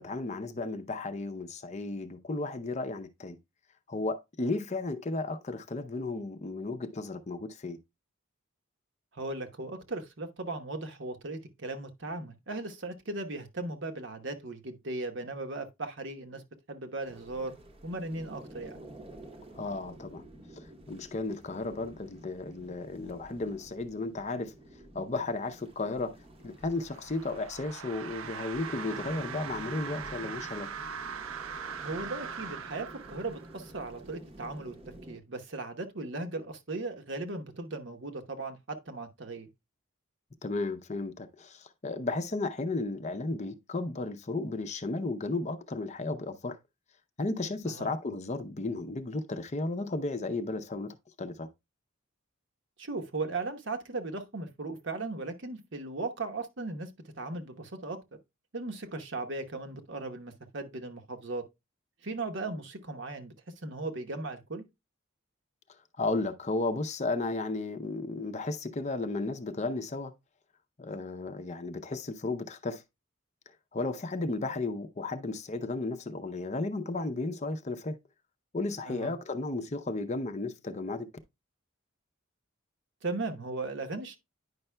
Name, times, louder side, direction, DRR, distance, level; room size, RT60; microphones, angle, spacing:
voice 1, 0.0-3.4 3.9-7.8 19.6-20.2 20.6-24.5 24.9-26.2 26.4-30.7 40.4-46.6 47.2-51.5 66.0-70.1 70.8-72.8 73.7-78.0 78.5-81.1, left 2 dB, 35° left, 0.6 m, -34 dB
voice 2, 9.1-17.6 17.8-18.8 31.8-34.7 35.1-39.5 47.6-47.9 52.8-56.9 57.2-58.0 58.5-61.4 62.0-63.3 63.6-64.6 78.9-79.1 83.0-84.2, right 3 dB, 60° right, 1.0 m, -37 dB
sound 1, 17.0-35.2, right 1 dB, 30° right, 0.8 m, -50 dB
sound 2, 26.6-33.7, right 7 dB, 80° right, 0.4 m, -41 dB
9.7 x 5.5 x 2.2 m
head